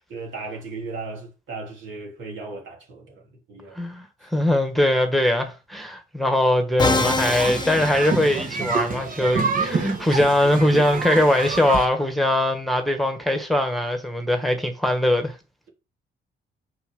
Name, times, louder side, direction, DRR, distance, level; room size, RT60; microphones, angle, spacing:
voice 1, 0.0-3.8, right 3 dB, 70° right, 2.9 m, -36 dB
voice 2, 3.8-4.1 4.3-15.3, left 1 dB, ahead, 1.5 m, -21 dB
Musical instrument, 6.8-8.9, left 3 dB, 20° left, 1.0 m, -25 dB
sound 1, 6.9-11.9, right 4 dB, 45° right, 1.3 m, -28 dB
6.2 x 4.5 x 5.4 m
cardioid pair, 90°, 20 cm